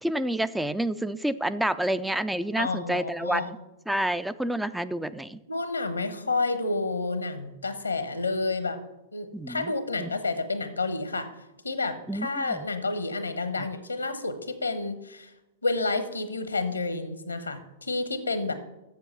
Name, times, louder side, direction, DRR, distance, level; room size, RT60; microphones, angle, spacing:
voice 1, 0.0-3.6 3.9-5.4 9.3-9.7 10.0-10.1 12.1-12.7 13.6-13.7, right 1 dB, 5° right, 13 dB, 0.3 m, -29 dB
voice 2, 2.6-3.5 5.5-8.8 9.1-11.3 11.6-15.3 15.6-18.5, left 3 dB, 90° left, 11 dB, 1.0 m, -30 dB
7.3 x 7.1 x 6.8 m, 0.96 s
figure-of-eight pair, 105°, 0 cm